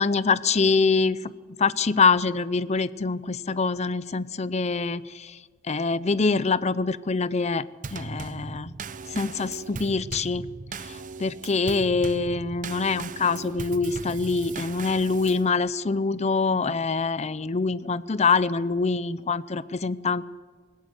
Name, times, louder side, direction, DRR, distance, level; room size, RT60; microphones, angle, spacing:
voice 1, 0.0-1.3 1.6-5.4 5.6-8.7 9.1-10.5 10.8-20.3, left 4 dB, 35° left, 16 dB, 0.6 m, -25 dB
Drum kit / Snare drum / Bass drum, 7.8-15.5, right 4 dB, 40° right, 0.7 m, -38 dB
20.5 x 20.0 x 8.1 m, 1.5 s
head